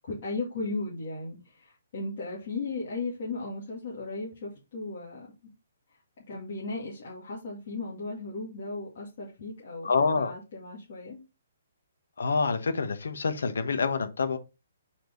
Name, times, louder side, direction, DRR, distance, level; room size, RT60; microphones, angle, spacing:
voice 1, 0.0-5.5 6.3-11.2, left 3 dB, 45° left, 2.3 m, -36 dB
voice 2, 9.8-10.3 12.2-14.4, left 4 dB, 80° left, 1.2 m, -27 dB
5.0 x 4.4 x 5.3 m
hypercardioid pair, 175°, 0 cm